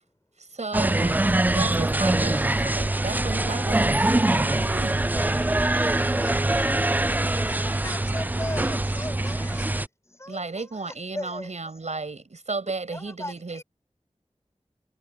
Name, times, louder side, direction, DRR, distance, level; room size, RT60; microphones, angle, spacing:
voice 1, 0.4-1.2 1.5-5.1 10.3-13.6, right 3 dB, 85° right, 7.0 m, -34 dB
sound 1, 0.7-9.9, right 2 dB, 15° right, 0.4 m, -23 dB
voice 2, 5.0-7.6, equal, 5° left, 2.6 m, -37 dB
voice 3, 5.6-6.6 7.3-9.7 10.0-11.5 12.9-13.6, left 1 dB, 25° left, 7.7 m, -39 dB
wide cardioid pair, 60°, 12 cm